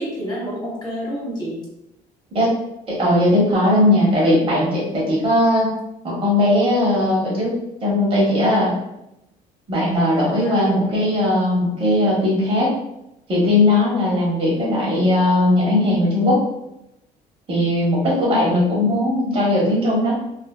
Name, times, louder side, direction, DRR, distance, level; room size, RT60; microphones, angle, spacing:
voice 1, 0.0-1.6 10.3-10.7 18.1-18.6, equal, 25° left, -6 dB, 1.2 m, -28 dB
voice 2, 2.9-5.7 6.0-7.5 7.8-8.8 9.7-12.8 13.3-16.4 17.5-20.2, left 1 dB, 35° right, -5 dB, 1.0 m, -18 dB
2.5 x 2.5 x 2.2 m, 0.85 s
cardioid pair, 110°, 17 cm